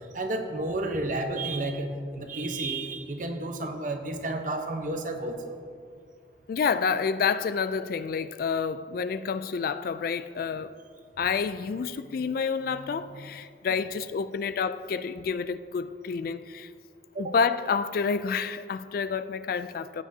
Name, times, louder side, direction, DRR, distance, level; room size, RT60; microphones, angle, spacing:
voice 1, 0.0-5.6 13.7-13.8 17.1-17.3, right 2 dB, 45° right, 0.9 m, -31 dB
voice 2, 6.5-10.7 11.2-16.7 17.2-20.0, left 5 dB, 55° left, 0.3 m, -29 dB
15.5 x 9.8 x 2.7 m
head